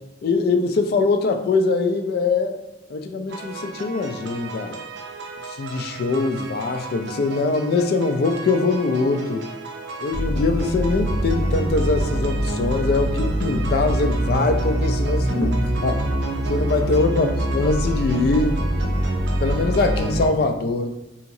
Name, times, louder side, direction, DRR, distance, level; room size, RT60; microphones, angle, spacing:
voice 1, 0.2-2.6 2.9-4.8 5.6-9.5 10.0-16.0 16.5-17.3 17.5-18.6 19.4-20.9, left 3 dB, 60° left, 7 dB, 0.3 m, -22 dB
sound 1, 3.3-20.3, right 1 dB, 85° right, 0.4 m, -25 dB
2.8 x 2.8 x 2.6 m, 0.92 s
head